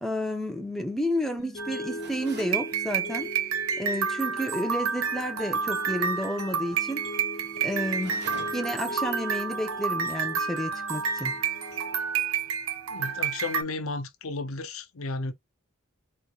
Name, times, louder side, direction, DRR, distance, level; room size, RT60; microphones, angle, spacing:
voice 1, 0.0-3.3 3.8-7.1 7.6-8.2 8.5-11.4, equal, ahead, 0.8 m, -31 dB
sound 1, 1.4-13.4, left 1 dB, 55° left, 1.4 m, -41 dB
sound 2, 1.6-13.6, right 6 dB, 85° right, 0.6 m, -30 dB
sound 3, 2.0-2.6 7.9-8.8, right 2 dB, 55° right, 1.1 m, -43 dB
voice 2, 12.9-15.3, left 3 dB, 75° left, 0.7 m, -33 dB
4.0 x 3.1 x 2.4 m
head